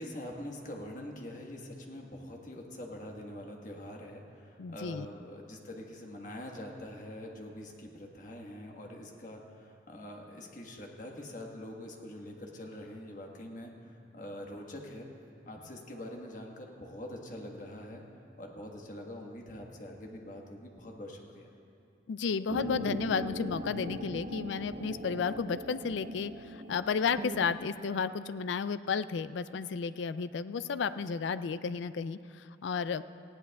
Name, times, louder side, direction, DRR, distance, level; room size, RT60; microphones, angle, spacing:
voice 1, 0.0-15.1 15.5-18.0 18.4-21.5, left 1 dB, 45° left, 1 dB, 1.3 m, -44 dB
voice 2, 4.6-5.1 22.1-33.0, left 5 dB, 75° left, 14 dB, 0.4 m, -33 dB
sound 1, 22.5-27.6, equal, 45° right, 0.6 m, -40 dB
19.0 x 15.5 x 2.3 m, 2.6 s
head